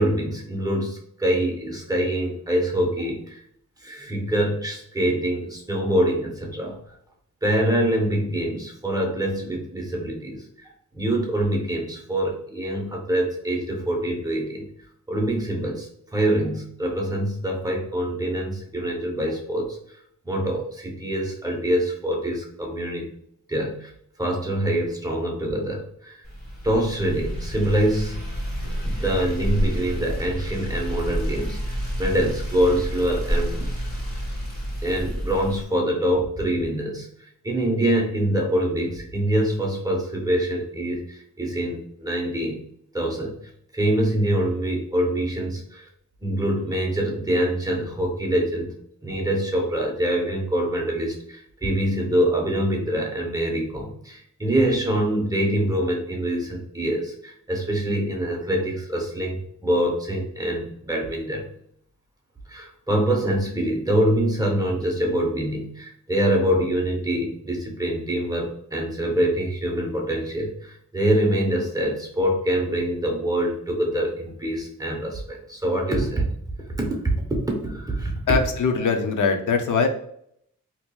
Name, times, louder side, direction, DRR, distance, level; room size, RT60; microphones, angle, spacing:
voice 1, 0.0-3.4 3.8-6.8 7.4-14.7 15.1-19.8 20.3-23.1 23.5-23.9 24.2-26.2 26.6-28.2 28.8-33.7 34.8-37.1 37.4-42.6 42.9-43.4 43.7-45.8 46.2-48.7 49.0-61.4 62.5-76.3 76.8-77.1 77.6-78.1, right 1 dB, 10° right, 0 dB, 0.7 m, -25 dB
sound 1, 26.2-35.6, equal, 30° left, 1.4 m, -29 dB
voice 2, 78.3-79.9, left 5 dB, 75° left, 5 dB, 0.5 m, -22 dB
4.3 x 2.8 x 2.2 m, 0.67 s
wide cardioid pair, 175°, 31 cm